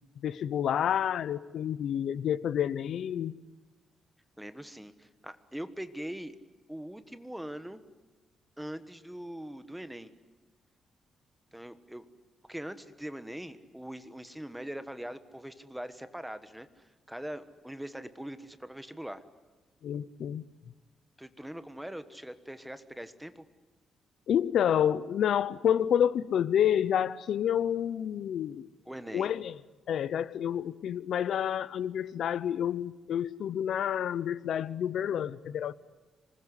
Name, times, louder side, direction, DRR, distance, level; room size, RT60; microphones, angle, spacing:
voice 1, 0.2-3.3 19.8-20.4 24.3-28.7 29.1-29.6 29.9-35.7, left 9 dB, 70° left, 18 dB, 0.8 m, -29 dB
voice 2, 4.4-6.4 6.7-7.8 8.6-10.1 11.5-12.0 12.5-19.2 21.2-23.4 28.8-29.3, right 1 dB, 5° right, 11 dB, 1.3 m, -42 dB
26.0 x 20.5 x 9.9 m, 1.2 s
cardioid pair, 145°, 0 cm